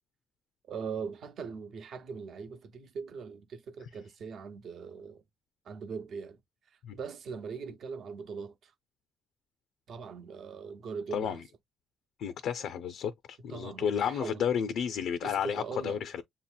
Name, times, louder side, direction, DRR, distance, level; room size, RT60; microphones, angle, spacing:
voice 1, 0.7-5.2 5.6-6.4 6.9-8.7 9.9-11.4 13.5-14.4 15.2-16.0, right 5 dB, 65° right, 0.8 m, -41 dB
voice 2, 12.2-16.2, left 8 dB, 85° left, 0.4 m, -32 dB
7.1 x 2.8 x 2.2 m
cardioid pair, 105°, 0 cm